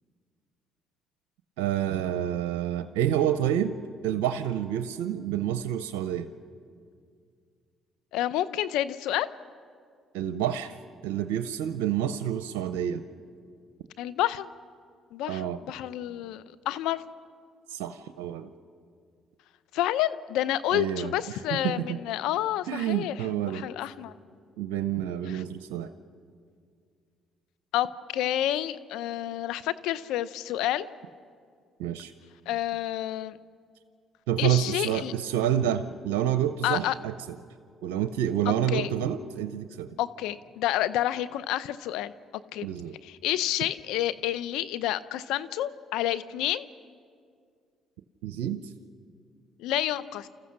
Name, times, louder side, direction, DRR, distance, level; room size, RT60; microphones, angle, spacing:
voice 1, 1.6-3.8 4.0-6.3 10.1-10.8 11.0-13.0 15.3-15.6 17.7-18.5 20.7-22.0 22.7-23.7 24.6-25.9 31.8-32.1 34.3-37.1 37.8-40.0 42.6-43.0 48.2-48.7, right 10 dB, 85° right, 10 dB, 0.6 m, -28 dB
voice 2, 8.1-9.3 14.0-14.5 15.1-17.0 19.7-23.2 23.5-24.1 25.3-25.4 27.7-27.9 28.1-30.9 32.5-33.4 34.4-35.1 36.6-36.9 38.5-38.9 40.0-42.1 42.5-42.7 43.0-46.7 49.6-50.3, left 13 dB, 80° left, 14 dB, 0.6 m, -29 dB
29.0 x 14.5 x 6.4 m, 2.2 s
supercardioid pair, 65°, 0 cm